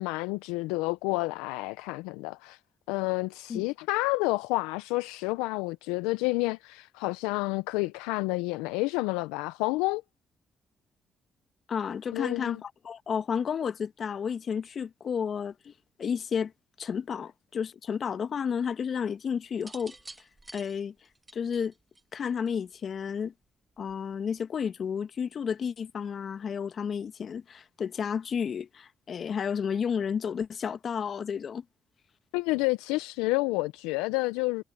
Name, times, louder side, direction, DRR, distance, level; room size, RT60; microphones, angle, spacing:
voice 1, 0.0-2.6 2.9-10.0 12.1-12.6 32.3-34.6, left 23 dB, 85° left, 0.4 m, -29 dB
voice 2, 11.7-15.7 16.0-16.5 16.8-19.9 20.5-20.9 21.3-21.7 22.1-23.3 23.8-31.6, left 7 dB, 55° left, 1.3 m, -32 dB
sound 1, 19.5-22.7 23.8-24.1, right 2 dB, 20° right, 2.2 m, -49 dB
hypercardioid pair, 50°, 0 cm